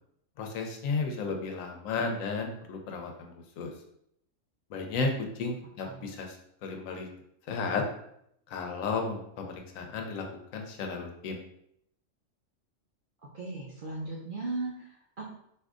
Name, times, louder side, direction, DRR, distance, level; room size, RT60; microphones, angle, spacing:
voice 1, 0.4-3.7 4.7-5.1 5.3-7.1 7.5-7.8 8.5-10.2 10.5-11.4, left 4 dB, 80° left, 3 dB, 1.0 m, -33 dB
voice 2, 13.3-15.3, right 2 dB, 60° right, -4 dB, 0.5 m, -37 dB
3.5 x 2.5 x 2.4 m, 0.74 s
omnidirectional pair, 1.4 m